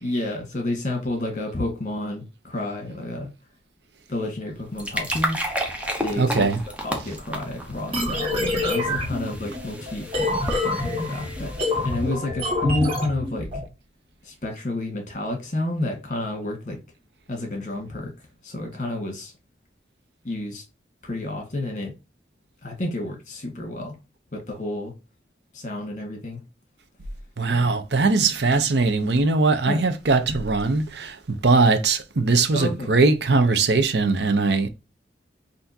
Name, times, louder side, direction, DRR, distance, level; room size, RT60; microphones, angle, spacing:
voice 1, 0.0-3.3 4.1-5.4 6.0-6.5 6.8-10.3 10.6-13.5 14.2-16.8 17.3-19.3 20.2-20.6 21.0-21.9 22.6-24.0 24.3-24.9 25.5-26.4 27.5-27.7 29.6-29.8 32.5-32.9, left 1 dB, 45° left, 1.5 m, -30 dB
sound 1, 4.5-12.1, equal, 5° right, 0.7 m, -32 dB
voice 2, 6.2-6.6 27.4-34.7, right 3 dB, 75° right, 0.7 m, -20 dB
sound 2, 7.9-13.6, left 2 dB, 30° right, 1.6 m, -26 dB
5.8 x 2.8 x 2.7 m
head